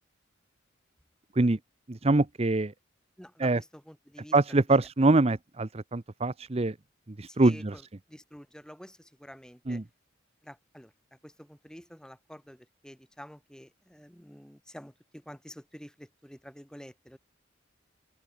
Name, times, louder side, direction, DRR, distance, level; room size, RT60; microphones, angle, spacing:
voice 1, 1.9-2.7 3.4-3.6 4.3-6.8 7.1-7.8 9.7-9.8, right 2 dB, 30° right, 0.7 m, -24 dB
voice 2, 3.2-4.4 7.3-7.8 8.1-9.8 10.4-17.2, equal, 5° left, 7.9 m, -49 dB
open air
head